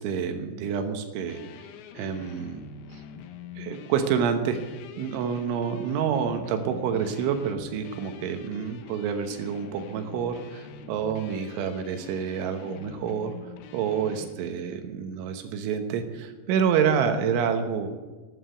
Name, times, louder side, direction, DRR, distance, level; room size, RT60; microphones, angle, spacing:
voice 1, 0.0-1.4 2.0-2.6 3.6-4.6 5.0-13.3 13.7-17.9, right 7 dB, 75° right, 7 dB, 3.5 m, -28 dB
sound 1, 1.3-14.4, left 7 dB, 80° left, 2.3 m, -45 dB
12.0 x 10.5 x 7.8 m, 1.3 s
omnidirectional pair, 5.7 m